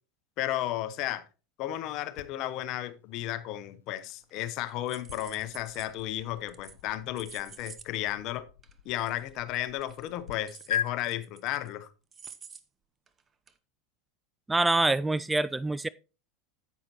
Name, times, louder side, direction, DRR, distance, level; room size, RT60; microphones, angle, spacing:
voice 1, 0.4-1.3 1.6-8.5 8.8-11.9, left 14 dB, 55° left, 0.9 m, -33 dB
sound 1, 2.2-10.3 10.7-10.9, left 9 dB, 80° left, 0.6 m, -41 dB
sound 2, 4.0-4.4 4.7-6.0 6.5-6.8 7.2-7.9 8.1-8.2 8.6-8.7 9.1-9.3 9.6-11.7 12.1-12.6 13.1-13.2 13.5-13.6, right 6 dB, 25° right, 0.9 m, -49 dB
voice 2, 14.5-15.9, right 2 dB, 10° right, 0.3 m, -25 dB
10.0 x 8.2 x 2.9 m
hypercardioid pair, 90°, 0 cm